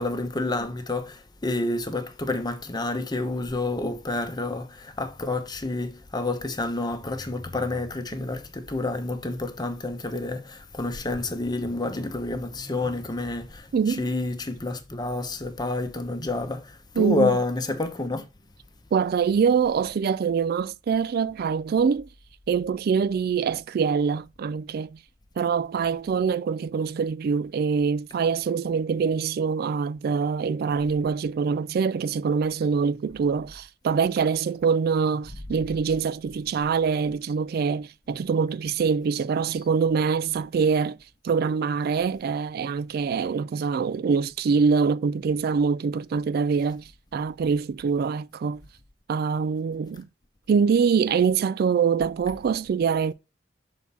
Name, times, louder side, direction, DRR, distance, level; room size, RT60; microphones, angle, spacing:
voice 1, 0.0-18.2, left 2 dB, 20° left, 0.9 m, -29 dB
voice 2, 13.7-14.0 17.0-17.3 18.9-22.1 22.5-25.0 25.4-41.0 41.2-48.6 49.1-50.1 50.5-53.1, right 6 dB, 55° right, 0.3 m, -24 dB
6.4 x 4.2 x 5.5 m
head